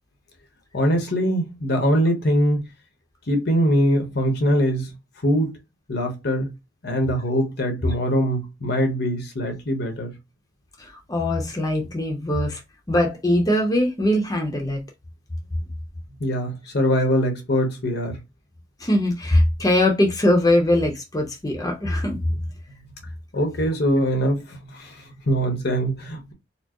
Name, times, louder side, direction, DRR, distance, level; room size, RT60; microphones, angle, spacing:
voice 1, 0.7-2.6 3.3-4.9 5.2-5.6 5.9-6.5 6.8-10.1 16.2-18.2 23.3-26.3, equal, 60° left, 1.0 m, -22 dB
voice 2, 11.1-12.6 12.9-14.8 18.8-22.2, left 1 dB, 20° left, 0.7 m, -21 dB
4.3 x 2.0 x 2.9 m
head